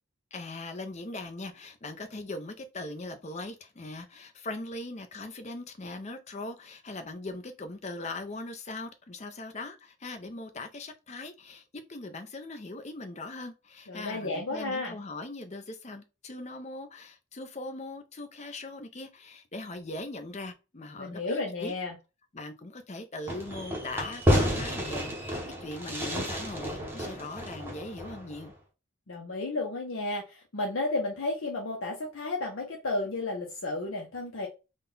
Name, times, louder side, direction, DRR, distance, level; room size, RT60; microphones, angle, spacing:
voice 1, 0.3-21.7 22.3-28.5, left 2 dB, 30° left, 0.5 m, -40 dB
voice 2, 13.9-15.0 21.0-22.0 29.1-34.5, left 2 dB, 65° left, 0.7 m, -32 dB
Fireworks, 23.3-28.5, equal, 10° right, 0.8 m, -30 dB
3.7 x 2.3 x 3.8 m
head